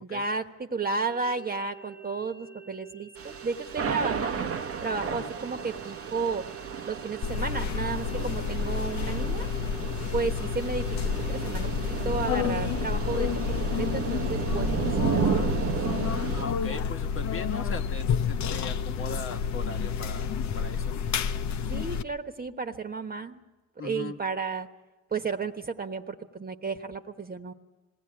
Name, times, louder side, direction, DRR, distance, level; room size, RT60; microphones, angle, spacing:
voice 1, 0.0-4.5 4.8-6.5 6.8-9.5 10.1-11.7 12.0-15.7 21.7-23.4 23.8-24.7 25.1-27.5, right 4 dB, 30° right, 6 dB, 1.3 m, -33 dB
sound 1, 1.0-16.5, right 8 dB, 80° right, 1.0 m, -47 dB
Thunder / Rain, 3.2-16.4, right 7 dB, 50° right, 0.9 m, -33 dB
sound 2, 7.2-22.0, left 7 dB, 65° left, 0.8 m, -30 dB
voice 2, 16.3-21.0 23.8-24.2, left 3 dB, 45° left, 5 dB, 1.2 m, -39 dB
21.0 x 16.5 x 9.9 m, 1.2 s
cardioid pair, 90°, 30 cm